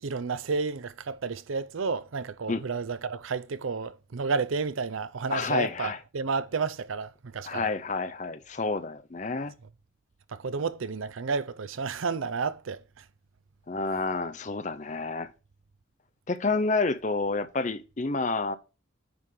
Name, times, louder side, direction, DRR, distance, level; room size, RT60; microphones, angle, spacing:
voice 1, 0.0-7.7 10.3-13.0, right 4 dB, 85° right, 0.6 m, -31 dB
voice 2, 5.3-6.0 7.4-9.5 13.7-15.3 16.3-18.6, left 3 dB, 35° left, 0.6 m, -29 dB
9.6 x 3.8 x 4.8 m
head